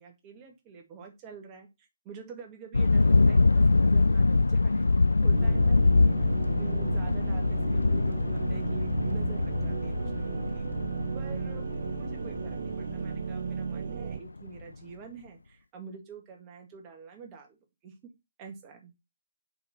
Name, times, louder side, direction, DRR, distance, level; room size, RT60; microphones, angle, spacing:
voice 1, 0.0-1.7 2.0-4.9 5.2-6.3 6.6-10.7 11.1-17.6 17.8-18.1 18.4-18.9, right 5 dB, 25° right, 2 dB, 2.0 m, -47 dB
sound 1, 2.7-14.3, left 3 dB, 85° left, 0.4 m, -24 dB
sound 2, 5.3-14.2, right 7 dB, 60° right, 0.3 m, -35 dB
5.0 x 4.9 x 5.6 m, 0.24 s
figure-of-eight pair, 140°, 0 cm